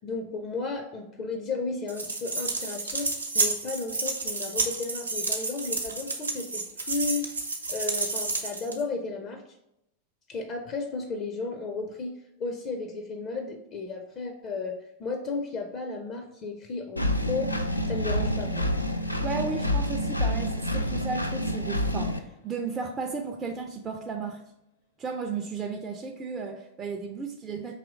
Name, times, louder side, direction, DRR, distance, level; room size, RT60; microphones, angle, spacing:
voice 1, 0.0-3.1 3.3-7.3 7.7-9.4 10.3-12.1 12.4-17.5 17.9-18.7, left 3 dB, 35° left, 4 dB, 0.5 m, -34 dB
sound 1, 1.9-8.8, right 3 dB, 80° right, 0.6 m, -30 dB
Engine, 17.0-22.2, left 1 dB, 85° left, 0.3 m, -28 dB
sound 2, 17.9-23.4, equal, 65° left, 0.8 m, -44 dB
voice 2, 19.2-24.4 25.0-27.7, right 4 dB, 20° right, 2 dB, 0.4 m, -34 dB
4.9 x 3.0 x 3.6 m, 0.82 s
figure-of-eight pair, 90°, 0 cm